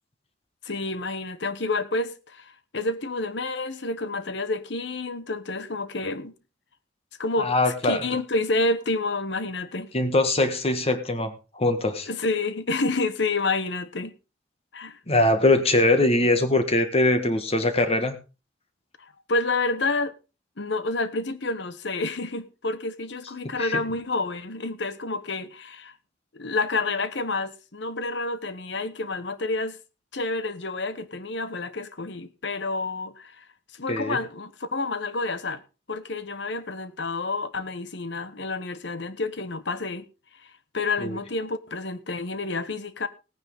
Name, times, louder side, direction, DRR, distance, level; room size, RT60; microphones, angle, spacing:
voice 1, 0.6-6.3 7.2-9.9 12.1-14.1 14.7-15.0 19.3-20.1 20.6-25.9 26.3-29.8 30.1-33.5 33.7-35.6 35.9-40.1 40.3-43.1, left 3 dB, 65° left, 1.1 m, -29 dB
voice 2, 7.4-8.0 9.9-12.1 15.1-18.2 23.6-23.8 33.9-34.2 41.0-41.2, left 2 dB, 35° left, 1.7 m, -22 dB
17.5 x 9.6 x 3.6 m
head